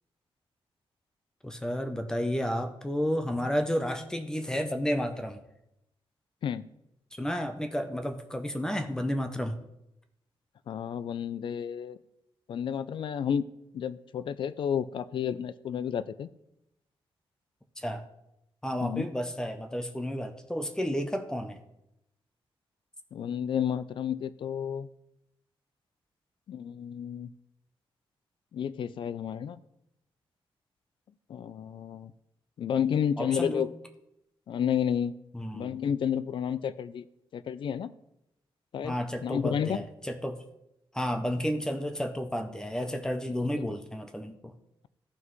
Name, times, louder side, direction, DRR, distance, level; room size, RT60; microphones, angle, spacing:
voice 1, 1.4-5.4 7.2-9.6 17.8-18.0 18.6-21.6 33.2-33.7 35.3-35.8 38.8-40.4 40.9-44.5, equal, 5° left, 6 dB, 0.6 m, -31 dB
voice 2, 10.7-12.0 12.5-13.5 13.7-16.3 18.8-19.1 23.1-24.9 26.5-27.3 28.5-29.6 31.3-32.1 32.6-33.7 34.5-35.1 35.5-37.0 37.3-37.9 38.7-39.0 39.2-39.8, left 8 dB, 60° left, 15 dB, 0.3 m, -31 dB
14.0 x 5.8 x 3.1 m, 0.85 s
wide cardioid pair, 175°, 10 cm